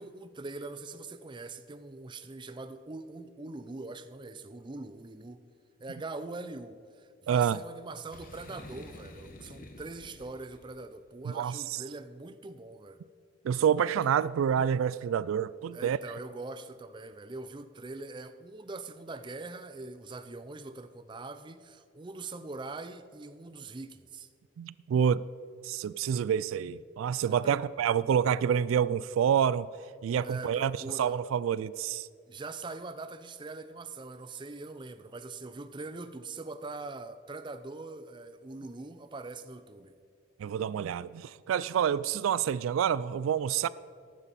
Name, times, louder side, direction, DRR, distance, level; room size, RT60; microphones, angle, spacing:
voice 1, 0.0-5.4 5.8-13.0 15.7-24.3 27.2-27.6 30.2-31.2 32.3-39.9, right 3 dB, 25° right, 0.4 m, -42 dB
voice 2, 7.3-7.6 11.2-11.8 13.4-16.0 24.6-25.2 25.6-29.7 30.0-30.7 31.0-32.1 40.4-43.7, right 8 dB, 90° right, 0.3 m, -28 dB
Boom, 8.1-10.8, left 1 dB, 45° left, 1.0 m, -49 dB
14.5 x 11.5 x 4.2 m
head